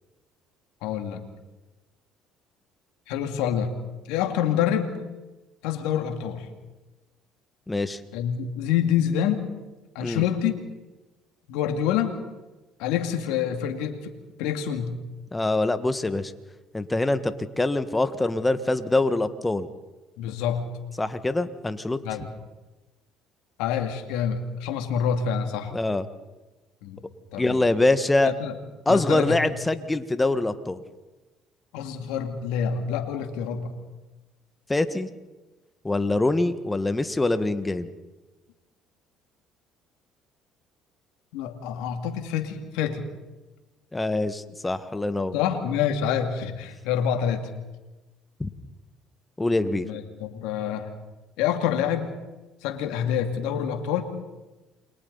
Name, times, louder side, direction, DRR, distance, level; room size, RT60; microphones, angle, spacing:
voice 1, 0.8-1.2 3.1-3.7 4.1-5.0 5.6-6.5 8.1-9.5 9.9-10.6 11.5-12.2 12.8-14.1 14.4-14.9 20.2-20.6 22.0-22.3 23.6-25.7 26.8-27.0 27.3-27.7 28.2-28.6 28.9-29.4 31.7-33.7 41.3-43.1 45.3-47.5 49.8-50.9 51.4-52.1 52.6-54.0, left 8 dB, 80° left, 6 dB, 2.4 m, -27 dB
voice 2, 7.7-8.0 10.0-10.2 15.3-16.3 16.7-19.7 21.0-22.0 25.7-26.0 27.4-28.3 28.8-30.8 34.7-35.1 35.8-37.9 43.9-45.3 48.4-48.5 49.4-49.9, left 2 dB, 15° left, 11 dB, 1.6 m, -24 dB
28.5 x 23.5 x 4.1 m, 1.1 s
hypercardioid pair, 65°, 0 cm